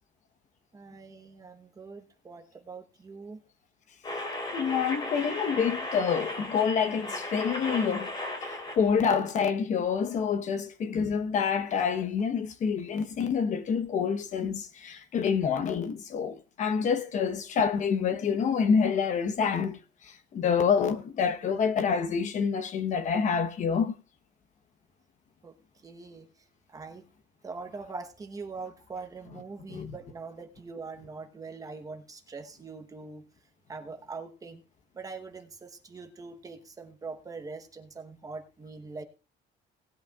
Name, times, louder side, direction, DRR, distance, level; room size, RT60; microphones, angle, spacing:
voice 1, 0.7-3.4 25.4-25.5 25.8-26.3 26.7-27.1 27.4-33.3 33.7-34.6 34.9-39.0, right 4 dB, 20° right, 1.0 m, -42 dB
sound 1, 4.0-9.0 9.3-9.4, left 2 dB, 25° left, 3.3 m, -36 dB
voice 2, 4.5-8.1 8.7-19.8 20.3-23.9 29.7-29.9, left 6 dB, 45° left, 1.0 m, -27 dB
18.5 x 11.0 x 2.4 m
cardioid pair, 175°, 18 cm